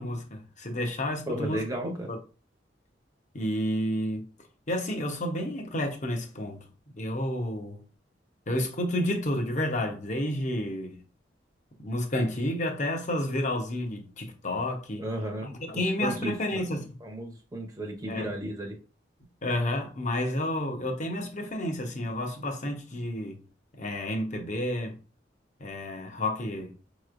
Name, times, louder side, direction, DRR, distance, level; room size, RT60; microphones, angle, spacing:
voice 1, 0.0-2.2 3.3-4.2 4.7-6.7 7.0-7.8 8.5-11.0 11.8-15.0 15.7-16.9 18.1-18.3 19.4-23.4 23.7-25.0 25.6-26.7, left 1 dB, 40° left, 0.9 m, -30 dB
voice 2, 1.3-2.1 15.0-16.6 17.0-18.8, right 1 dB, 20° right, 0.8 m, -34 dB
5.2 x 3.1 x 2.5 m
head